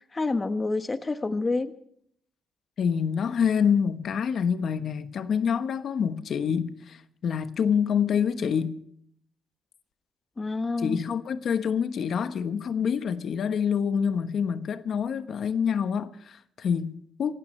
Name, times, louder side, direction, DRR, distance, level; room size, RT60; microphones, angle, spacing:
voice 1, 0.0-1.7 10.4-11.0, left 3 dB, 25° left, 1.3 m, -28 dB
voice 2, 2.8-8.8 10.8-17.3, left 7 dB, 60° left, 1.1 m, -26 dB
27.5 x 15.5 x 3.3 m
cardioid pair, 90°, 0 cm